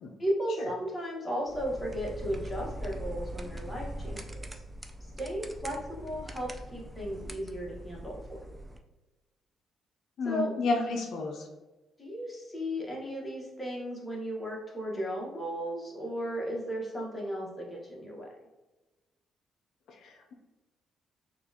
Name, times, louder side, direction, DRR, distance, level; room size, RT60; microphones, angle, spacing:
voice 1, 0.2-4.6 5.0-8.5 10.2-10.5 12.0-18.3, equal, 15° left, -4 dB, 1.3 m, -35 dB
sound 1, 1.5-8.8, right 1 dB, 15° right, 0.4 m, -41 dB
voice 2, 10.2-11.5 20.0-20.3, left 3 dB, 70° left, 2 dB, 0.4 m, -31 dB
4.2 x 2.4 x 2.7 m, 1.1 s
cardioid pair, 90°, 0 cm